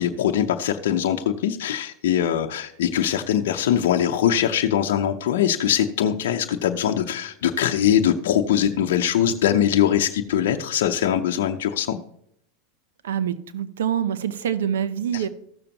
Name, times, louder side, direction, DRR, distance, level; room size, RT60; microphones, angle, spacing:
voice 1, 0.0-12.0 15.1-15.3, left 10 dB, 75° left, 3 dB, 0.7 m, -22 dB
voice 2, 13.0-15.3, right 9 dB, 85° right, 14 dB, 0.8 m, -25 dB
15.0 x 6.8 x 2.9 m, 0.73 s
hypercardioid pair, 110°, 0 cm